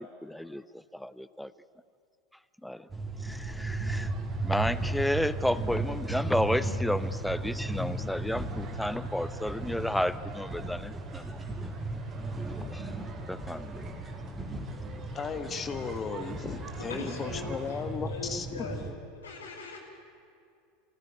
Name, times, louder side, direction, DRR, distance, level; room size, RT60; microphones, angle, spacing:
voice 1, 0.0-1.5 2.6-2.9 3.2-4.1 4.4-11.7 12.2-12.9 13.3-13.8, left 1 dB, 5° left, 15 dB, 0.8 m, -32 dB
sound 1, 2.9-18.9, right 2 dB, 15° right, 3.1 m, -35 dB
sound 2, 3.9-18.0, right 6 dB, 40° right, 3.1 m, -49 dB
voice 2, 15.1-18.5, left 6 dB, 30° left, 8 dB, 1.5 m, -35 dB
voice 3, 16.9-18.9 19.2-19.8, left 2 dB, 90° left, 1 dB, 4.6 m, -40 dB
23.5 x 17.0 x 9.9 m, 2.4 s
hypercardioid pair, 90°, 0 cm